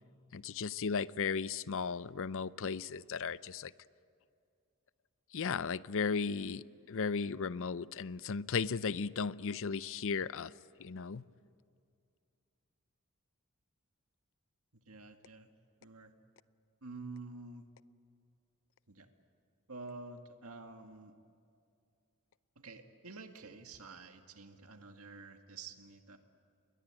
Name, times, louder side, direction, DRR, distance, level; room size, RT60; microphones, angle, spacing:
voice 1, 0.3-3.7 5.3-10.5 10.8-11.2, left 5 dB, 60° left, 17 dB, 0.6 m, -35 dB
voice 2, 14.7-15.5 15.8-16.1 16.8-17.6 18.9-19.1 19.7-21.1 22.6-26.2, right 3 dB, 70° right, 5 dB, 2.0 m, -49 dB
29.0 x 22.0 x 8.9 m, 2.4 s
head